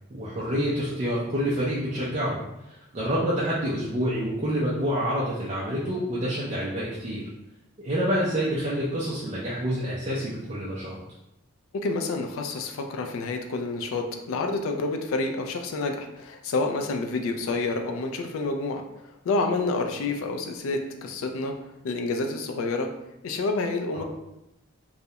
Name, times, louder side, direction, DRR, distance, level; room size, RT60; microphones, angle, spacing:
voice 1, 0.1-2.4 2.6-7.2 7.8-11.0 23.9-24.0, equal, 30° right, -7 dB, 0.4 m, -27 dB
voice 2, 11.7-21.6 21.8-22.9 23.2-24.0, left 3 dB, 75° left, 4 dB, 0.3 m, -28 dB
2.3 x 2.0 x 2.7 m, 0.89 s
head